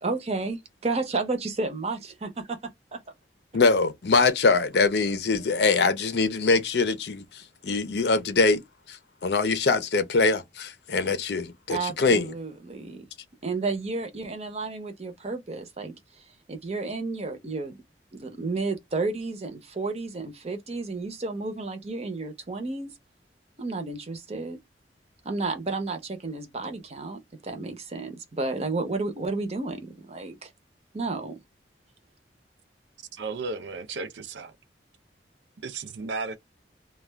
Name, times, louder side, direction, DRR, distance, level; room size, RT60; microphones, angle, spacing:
voice 1, 0.0-3.0 11.7-13.1 13.4-16.2 16.5-17.8 18.2-22.9 23.6-24.6 25.2-30.5 30.9-31.3, right 3 dB, 35° right, 0.6 m, -32 dB
voice 2, 3.5-8.6 8.9-12.3, left 4 dB, 65° left, 0.6 m, -23 dB
voice 3, 33.1-34.5 35.6-36.3, right 4 dB, 85° right, 0.5 m, -34 dB
2.3 x 2.2 x 3.2 m
head